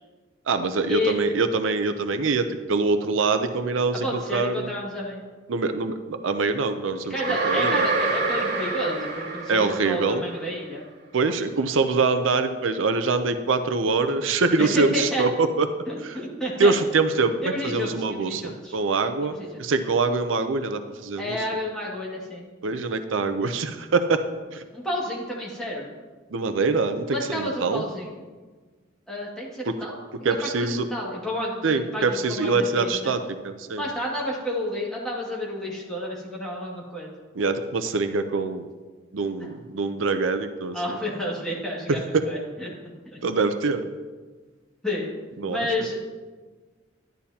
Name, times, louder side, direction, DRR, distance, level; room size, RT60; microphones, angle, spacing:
voice 1, 0.5-4.1 4.3-4.7 5.5-7.9 9.5-10.2 11.1-15.7 16.0-16.2 16.6-21.4 22.6-24.2 24.5-24.6 26.3-27.8 29.7-29.8 30.2-30.9 31.6-33.2 33.4-33.8 37.3-38.7 39.1-41.0 42.1-42.2 43.2-43.9 45.4-45.7, right 4 dB, 80° right, 9 dB, 0.6 m, -24 dB
voice 2, 4.0-5.2 7.1-10.9 14.6-15.2 15.9-16.7 17.4-18.8 19.2-19.5 21.2-22.5 24.7-25.9 27.1-28.2 29.1-29.9 30.4-33.1 33.8-37.1 39.4-39.5 40.7-42.7 43.1-43.2 44.8-45.1 45.5-46.0, left 1 dB, 5° left, -5 dB, 2.0 m, -30 dB
sound 1, 7.2-10.3, right 3 dB, 50° right, 3.0 m, -26 dB
11.5 x 10.5 x 2.8 m, 1.4 s
head